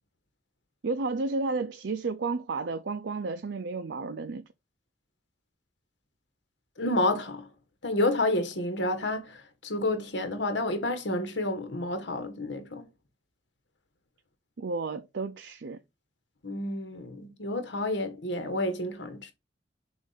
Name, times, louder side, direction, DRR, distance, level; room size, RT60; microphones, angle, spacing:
voice 1, 0.8-4.5 14.6-15.8, right 3 dB, 80° right, 0.5 m, -32 dB
voice 2, 6.8-7.5 7.8-12.8 16.4-19.3, left 1 dB, 90° left, 1.4 m, -30 dB
7.0 x 2.6 x 5.5 m
head